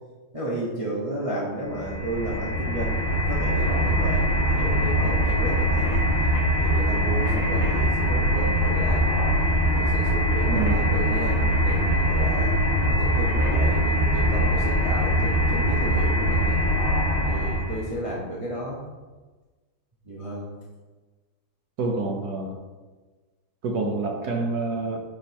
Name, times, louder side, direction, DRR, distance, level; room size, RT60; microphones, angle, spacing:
voice 1, 0.3-9.2 9.7-12.5 12.9-16.6 17.2-18.8 20.1-20.5, right 1 dB, 25° right, -5 dB, 0.9 m, -33 dB
sound 1, 1.7-17.9, equal, 40° left, 0.9 m, -22 dB
voice 2, 10.5-10.9 21.8-22.6 23.6-25.0, right 3 dB, 60° right, 1 dB, 1.1 m, -27 dB
8.6 x 5.0 x 2.9 m, 1.3 s
omnidirectional pair, 2.2 m